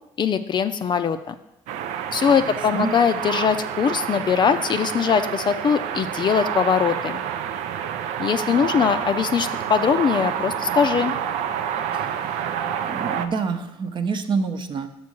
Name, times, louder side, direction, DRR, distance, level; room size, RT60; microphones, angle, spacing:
voice 1, 0.2-1.3 2.1-7.2 8.2-11.1, left 7 dB, 40° left, 9 dB, 0.5 m, -21 dB
sound 1, 1.7-13.3, right 9 dB, 75° right, 0.6 m, -28 dB
voice 2, 2.3-2.9 8.5-8.9 11.9-14.9, right 5 dB, 40° right, 6 dB, 0.8 m, -29 dB
6.0 x 5.5 x 6.2 m, 0.86 s
supercardioid pair, 90°, 12 cm